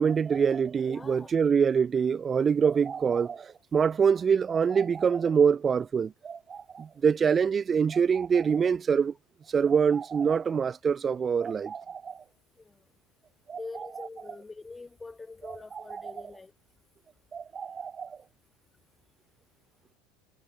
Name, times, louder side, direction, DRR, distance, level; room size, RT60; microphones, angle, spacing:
voice 1, 0.0-9.1 9.5-12.2 13.5-13.6 15.5-16.1 17.3-18.2, right 6 dB, 30° right, 0.5 m, -25 dB
voice 2, 0.9-1.3 12.6-12.8 13.5-16.5, left 3 dB, 15° left, 7.2 m, -44 dB
hypercardioid pair, 85°, 0 cm